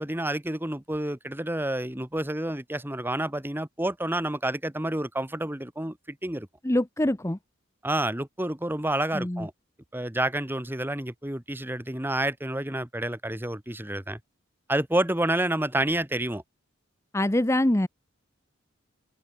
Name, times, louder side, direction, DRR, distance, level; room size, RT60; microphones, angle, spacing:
voice 1, 0.0-6.5 7.8-9.5 9.9-14.2 14.7-16.4, right 1 dB, 10° right, 1.6 m, -29 dB
voice 2, 6.6-7.4 9.1-9.5 17.1-17.9, left 1 dB, 15° left, 0.8 m, -24 dB
head